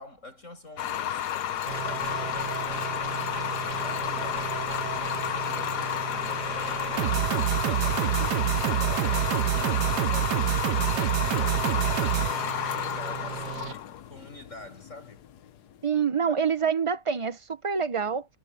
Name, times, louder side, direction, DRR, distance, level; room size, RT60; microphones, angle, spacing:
voice 1, 0.0-4.5 5.2-7.2 7.6-15.3, left 2 dB, 40° left, 8.2 m, -48 dB
sound 1, 0.8-15.7, left 10 dB, 65° left, 1.3 m, -31 dB
sound 2, 1.7-13.7, right 15 dB, 75° right, 1.2 m, -29 dB
voice 2, 15.8-18.3, right 6 dB, 55° right, 0.3 m, -26 dB
omnidirectional pair, 1.9 m